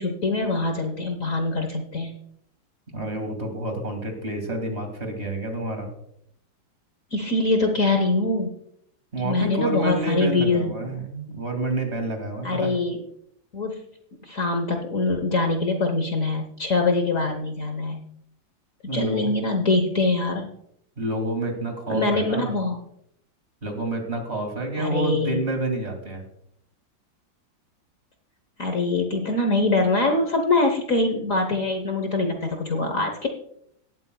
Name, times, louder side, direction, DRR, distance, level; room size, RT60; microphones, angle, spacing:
voice 1, 0.0-2.2 7.1-8.6 9.2-10.7 12.4-13.0 13.5-13.9 14.2-18.0 18.9-20.5 21.9-22.8 24.8-25.4 28.6-33.3, left 2 dB, 50° left, 4 dB, 1.3 m, -23 dB
voice 2, 2.9-5.9 9.1-12.7 18.9-19.3 21.0-22.5 23.6-26.2, right 2 dB, 35° right, 4 dB, 2.5 m, -28 dB
17.0 x 12.5 x 2.3 m, 0.71 s
omnidirectional pair, 2.1 m